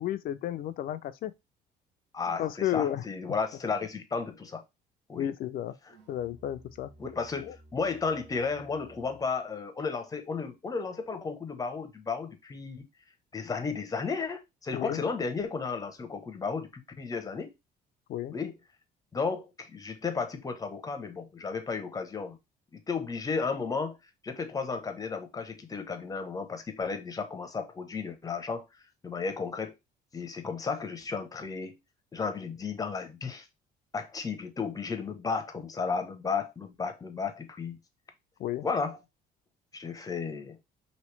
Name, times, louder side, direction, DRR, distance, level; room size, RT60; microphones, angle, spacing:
voice 1, 0.0-1.3 2.4-3.0 5.2-5.7 6.1-6.9 7.4-7.6 14.7-15.0 18.1-18.3 38.4-38.7, left 11 dB, 60° left, 0.4 m, -32 dB
voice 2, 2.1-4.6 5.1-5.3 7.0-12.9 13.3-17.5 18.3-18.5 19.1-22.4 22.7-24.0 24.2-28.6 29.0-29.7 30.1-31.8 32.1-33.5 33.9-37.8 38.6-39.0 39.7-40.6, left 5 dB, 20° left, 0.7 m, -33 dB
Musical instrument, 5.9-9.4, right 1 dB, 75° right, 1.2 m, -56 dB
3.0 x 2.8 x 3.2 m
cardioid pair, 110°, 17 cm